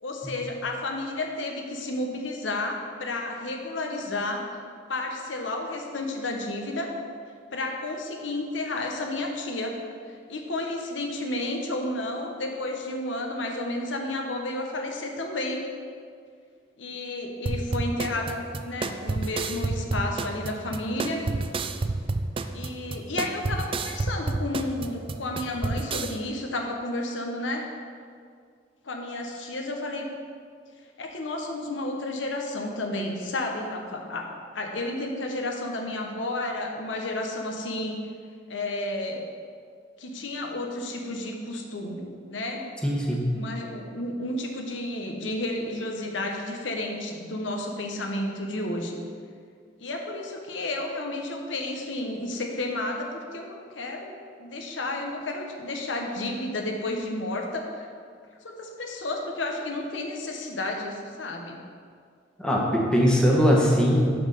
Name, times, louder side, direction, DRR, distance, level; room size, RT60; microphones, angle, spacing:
voice 1, 0.0-4.5 4.9-6.9 7.5-9.8 10.3-15.6 16.8-21.2 22.5-27.7 28.8-30.1 31.0-34.3 34.5-38.0 38.5-39.3 40.0-42.6 43.3-49.0 49.8-57.9 58.4-61.6, left 2 dB, 80° left, 2 dB, 1.0 m, -32 dB
sound 1, 17.5-26.1, right 3 dB, 30° right, 0.4 m, -29 dB
voice 2, 42.8-43.2 62.4-64.1, equal, 5° left, -3 dB, 1.1 m, -21 dB
6.0 x 5.5 x 6.7 m, 2.1 s
head